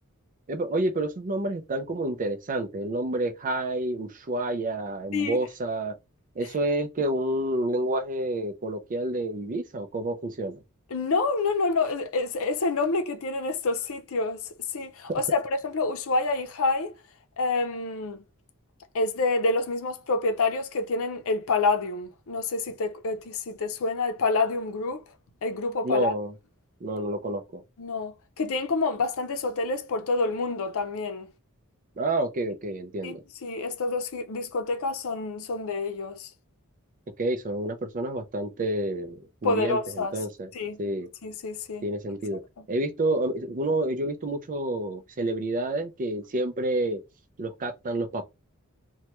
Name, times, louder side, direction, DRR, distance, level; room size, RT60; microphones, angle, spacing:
voice 1, 0.5-6.0 6.4-10.6 15.1-15.2 25.8-26.3 26.8-27.6 32.0-33.2 37.2-40.5 40.8-41.1 41.8-42.4 42.7-47.0 47.4-48.2, right 1 dB, 35° right, 0.5 m, -29 dB
voice 2, 10.9-14.4 14.7-17.0 17.4-18.2 18.9-25.0 25.4-26.1 27.8-31.3 33.0-33.2 33.4-36.3 39.4-40.1 40.5-40.8 41.2-41.8, left 3 dB, 65° left, 0.6 m, -27 dB
3.1 x 2.2 x 2.9 m
head